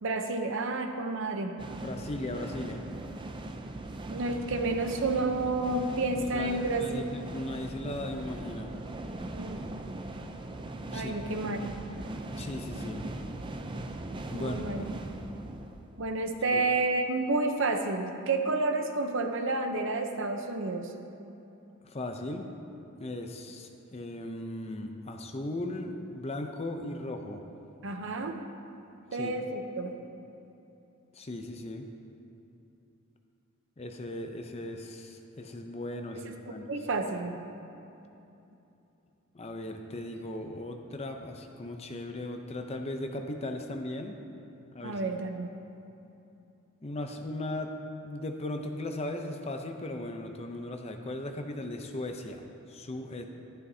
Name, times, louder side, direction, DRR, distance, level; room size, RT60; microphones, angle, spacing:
voice 1, 0.0-1.6 4.1-7.0 9.3-9.6 10.9-11.6 14.3-14.8 16.0-20.9 27.8-28.4 29.1-30.0 36.1-37.4 44.8-45.5, right 3 dB, 60° right, 5 dB, 0.7 m, -30 dB
sound 1, 1.6-16.4, right 2 dB, 20° right, 0.4 m, -40 dB
voice 2, 1.8-2.8 6.3-8.8 10.9-11.1 12.3-13.1 14.3-14.5 16.5-16.6 21.8-22.5 23.0-27.4 29.1-29.3 31.1-31.9 33.8-36.7 39.3-44.2 44.7-45.0 46.8-47.7 48.0-52.4 52.7-53.3, left 1 dB, 30° left, 4 dB, 0.6 m, -37 dB
12.5 x 11.5 x 2.7 m, 2.9 s
head